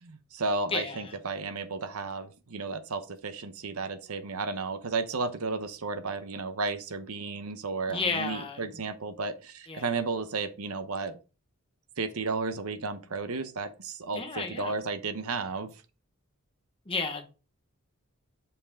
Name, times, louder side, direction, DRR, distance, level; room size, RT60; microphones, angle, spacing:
voice 1, 0.0-11.2 12.0-15.7, right 3 dB, 80° right, 0.9 m, -33 dB
voice 2, 0.7-1.1 7.9-8.6 9.7-9.9 14.1-14.7 16.9-17.3, left 4 dB, 25° left, 1.2 m, -32 dB
7.0 x 5.4 x 3.7 m
head